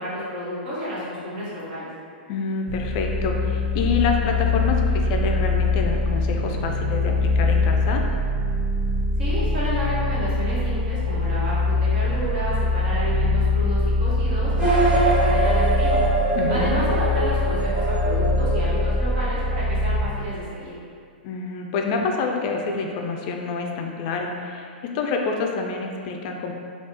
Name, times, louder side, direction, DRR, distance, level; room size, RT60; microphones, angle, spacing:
voice 1, 0.0-1.9 9.2-16.0 16.5-20.7, equal, 60° right, -9 dB, 1.4 m, -31 dB
voice 2, 2.3-8.0 16.3-16.8 21.2-26.5, left 4 dB, 45° left, 2 dB, 0.3 m, -27 dB
sound 1, 2.7-20.0, left 2 dB, 45° right, 0.5 m, -23 dB
sound 2, 14.5-19.4, right 2 dB, 25° right, 1.0 m, -24 dB
3.4 x 2.3 x 2.8 m, 2.3 s
hypercardioid pair, 120°, 6 cm